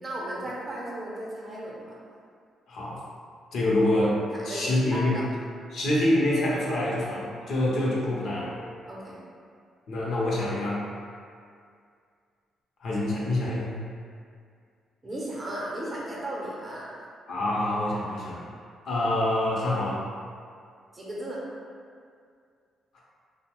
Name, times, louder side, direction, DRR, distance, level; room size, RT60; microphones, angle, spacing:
voice 1, 0.0-1.9 4.3-5.3 8.9-9.2 15.0-17.1 20.9-21.4, right 1 dB, 25° right, -5 dB, 0.7 m, -35 dB
voice 2, 3.5-5.1 5.7-8.5 9.9-10.8 12.8-13.7 17.3-18.4 18.9-20.0 22.9-23.0, left 1 dB, 65° left, -5 dB, 0.6 m, -26 dB
2.7 x 2.1 x 2.9 m, 2.2 s
cardioid pair, 90°, 0 cm